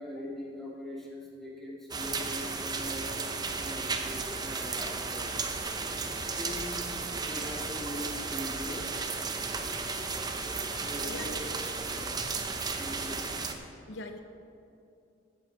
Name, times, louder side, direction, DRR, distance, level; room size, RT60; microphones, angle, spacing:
voice 1, 0.0-5.6 6.3-8.8 10.8-11.4 11.9-12.2 12.7-13.5, left 1 dB, ahead, -5 dB, 1.9 m, -42 dB
sound 1, 1.9-13.5, right 4 dB, 20° right, 0.6 m, -34 dB
voice 2, 11.1-11.4 13.9-14.2, left 2 dB, 60° left, 6 dB, 0.6 m, -41 dB
14.5 x 7.8 x 4.6 m, 2.6 s
head